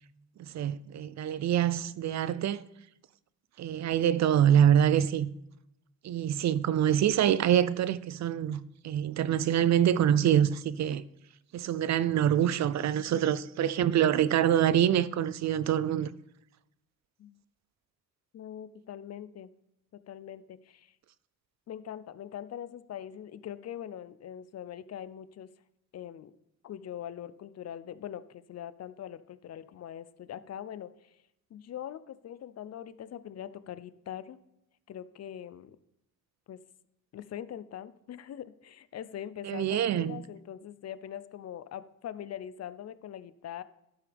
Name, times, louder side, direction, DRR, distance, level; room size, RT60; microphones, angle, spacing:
voice 1, 0.4-2.6 3.6-5.3 6.0-11.0 11.5-16.1 39.4-40.2, right 10 dB, 55° right, 0.5 m, -25 dB
voice 2, 18.3-19.5 20.1-20.9 21.7-25.5 25.9-26.3 26.6-31.1 31.5-34.4 34.9-35.8 36.5-36.6 37.1-43.6, left 10 dB, 50° left, 0.5 m, -42 dB
12.0 x 8.5 x 3.4 m
cardioid pair, 145°, 33 cm